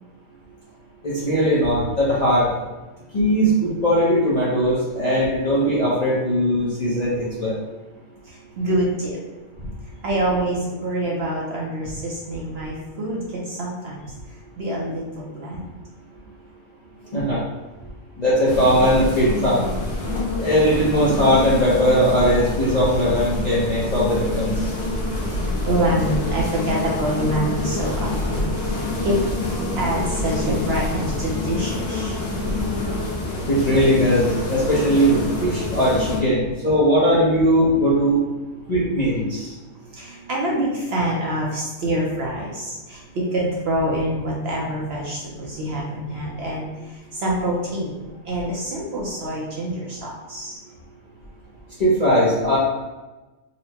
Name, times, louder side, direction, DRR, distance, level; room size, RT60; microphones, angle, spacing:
voice 1, 1.0-2.6 3.1-7.5 17.1-17.4 18.2-19.7 20.4-24.5 33.5-38.2 38.7-39.5 51.8-52.6, equal, 45° left, -8 dB, 0.6 m, -19 dB
voice 2, 8.6-9.2 10.0-14.0 14.6-15.6 25.7-29.2 29.7-32.2 40.0-46.7 47.2-50.6, right 1 dB, 60° right, -3 dB, 0.7 m, -26 dB
Bees airport, 18.4-36.2, left 2 dB, 60° left, 1.1 m, -26 dB
4.1 x 2.1 x 2.8 m, 1.1 s
omnidirectional pair, 1.5 m